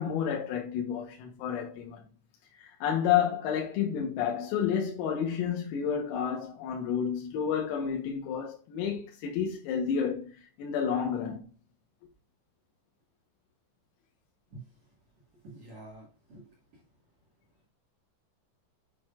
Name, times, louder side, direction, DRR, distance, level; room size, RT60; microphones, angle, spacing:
voice 1, 0.0-2.0 2.6-11.4, left 8 dB, 85° left, 3.9 m, -30 dB
voice 2, 15.4-16.5, right 2 dB, 55° right, 2.1 m, -47 dB
8.4 x 6.7 x 2.4 m
omnidirectional pair, 5.9 m